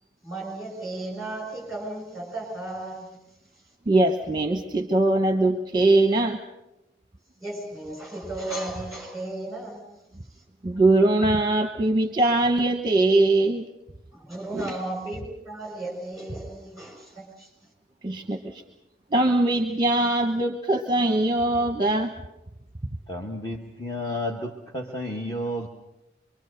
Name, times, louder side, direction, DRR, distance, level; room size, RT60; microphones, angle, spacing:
voice 1, 0.2-3.2 7.4-9.8 10.3-10.4 14.1-17.5, right 2 dB, ahead, 0 dB, 6.8 m, -35 dB
voice 2, 3.9-6.4 10.6-13.7 14.5-14.7 18.0-18.6 19.1-22.1, right 2 dB, 25° right, 5 dB, 1.1 m, -21 dB
voice 3, 23.1-25.7, left 1 dB, 20° left, 1 dB, 1.4 m, -31 dB
25.5 x 23.5 x 6.6 m, 0.93 s
head